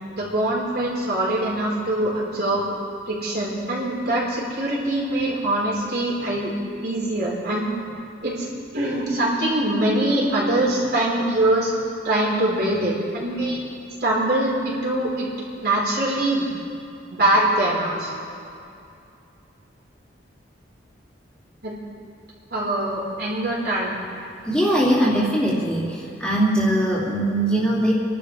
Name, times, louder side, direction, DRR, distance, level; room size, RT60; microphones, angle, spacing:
voice 1, 0.1-2.7 3.1-6.5 6.8-7.7 8.2-8.5 8.7-11.7 12.0-13.6 14.0-15.3 15.6-16.5 17.1-18.1 21.6-21.8 22.5-24.0, right 1 dB, 55° right, -5 dB, 4.6 m, -23 dB
voice 2, 24.5-27.9, right 1 dB, 5° left, -7 dB, 2.8 m, -21 dB
28.5 x 12.0 x 3.4 m, 2.5 s
head